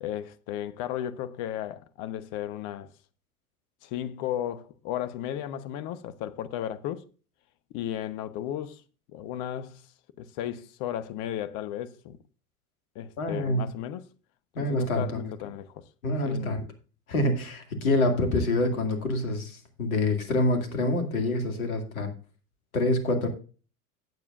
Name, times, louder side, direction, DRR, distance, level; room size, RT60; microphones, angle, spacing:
voice 1, 0.0-2.9 3.8-7.0 7.7-8.8 9.1-9.9 10.2-12.2 12.9-14.0 14.6-15.8 16.3-16.6, left 11 dB, 45° left, 1.0 m, -34 dB
voice 2, 13.2-13.7 14.5-15.3 16.0-16.6 17.1-22.1 22.7-23.3, left 1 dB, 70° left, 2.3 m, -26 dB
17.0 x 7.2 x 2.5 m
figure-of-eight pair, 80°, 44 cm